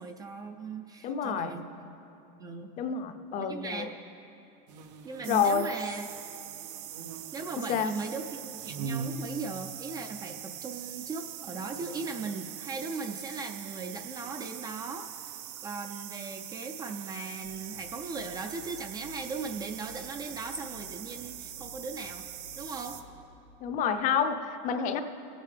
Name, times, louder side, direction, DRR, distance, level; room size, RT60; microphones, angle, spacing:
voice 1, 0.0-1.9 2.4-2.7 3.4-3.9 5.0-6.1 7.3-22.2 22.6-23.0, right 4 dB, 20° right, 5 dB, 0.3 m, -38 dB
voice 2, 1.0-1.6 2.8-3.9 5.3-5.7 7.7-7.9 23.6-25.0, left 7 dB, 40° left, 8 dB, 0.6 m, -28 dB
sound 1, 4.7-20.1, right 4 dB, 90° right, 0.9 m, -46 dB
sound 2, 5.2-23.0, right 11 dB, 60° right, 0.6 m, -43 dB
sound 3, 17.4-23.2, left 3 dB, 85° left, 2.0 m, -53 dB
22.0 x 9.0 x 3.3 m, 2.8 s
cardioid pair, 160°, 21 cm